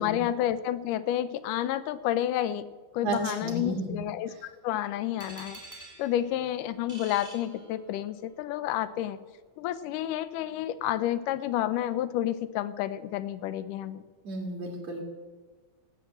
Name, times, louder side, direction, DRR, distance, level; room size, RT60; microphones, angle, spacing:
voice 1, 0.0-2.6 2.9-4.4 4.6-5.6 6.0-9.2 9.6-14.0, left 12 dB, 85° left, 14 dB, 2.2 m, -30 dB
voice 2, 3.0-4.0 14.2-15.0, right 2 dB, 55° right, 1 dB, 3.1 m, -32 dB
sound 1, 5.2-8.2, right 2 dB, 5° right, 1.7 m, -48 dB
15.5 x 7.7 x 7.8 m, 1.3 s
omnidirectional pair, 3.7 m